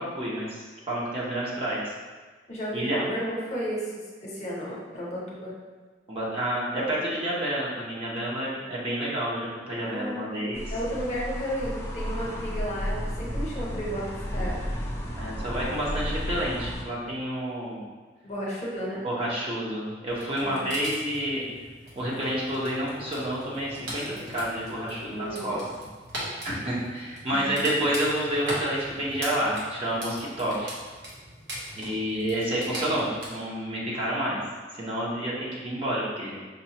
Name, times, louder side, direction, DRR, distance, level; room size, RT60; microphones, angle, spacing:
voice 1, 0.0-1.9 2.7-3.0 6.1-10.6 15.2-17.8 19.0-21.4 22.0-25.6 26.4-30.7 31.7-34.4 34.7-36.4, right 1 dB, 30° right, -6 dB, 0.8 m, -29 dB
voice 2, 2.5-3.9 4.2-5.5 9.8-10.4 10.7-14.6 18.2-19.0 20.4-20.7 25.1-25.6 27.3-27.6, equal, 40° left, -5 dB, 0.9 m, -33 dB
sound 1, 10.5-16.8, equal, 15° left, 0.4 m, -33 dB
sound 2, 20.1-33.3, right 1 dB, 70° right, 1.1 m, -40 dB
5.2 x 2.3 x 2.8 m, 1.4 s
head